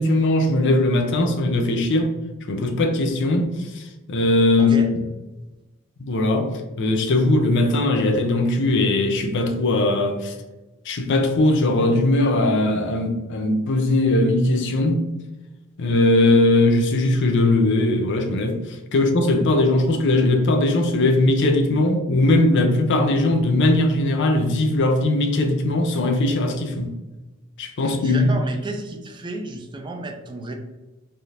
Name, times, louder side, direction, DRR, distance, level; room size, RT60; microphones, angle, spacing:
voice 1, 0.0-2.1 2.5-4.8 6.0-6.5 6.8-10.4 10.9-15.0 15.8-26.9 27.6-28.3, left 2 dB, 60° left, 0.5 m, -19 dB
voice 2, 4.6-4.9 27.8-30.5, right 2 dB, 20° right, 0.3 m, -32 dB
3.4 x 2.4 x 2.7 m
head